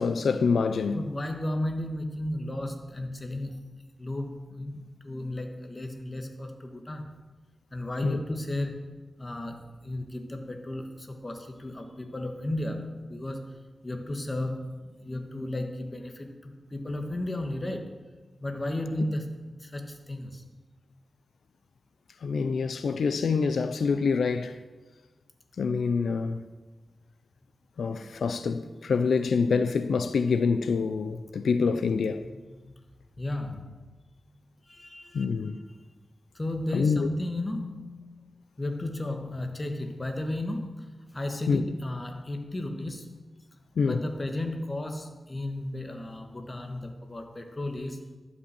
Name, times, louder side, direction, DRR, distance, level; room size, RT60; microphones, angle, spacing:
voice 1, 0.0-1.0 8.0-8.2 22.2-24.6 25.6-26.4 27.8-32.3 35.1-35.6 36.7-37.1 41.5-41.6 43.8-44.0, left 5 dB, 85° left, 0.4 m, -26 dB
voice 2, 1.0-3.6 4.0-7.2 7.7-8.8 9.2-18.0 18.4-20.4 32.2-32.8 33.2-33.8 34.7-35.5 36.3-38.3 38.6-43.1 43.8-48.0, left 1 dB, 25° left, 1.3 m, -34 dB
12.0 x 5.4 x 8.1 m
wide cardioid pair, 115°, 0 cm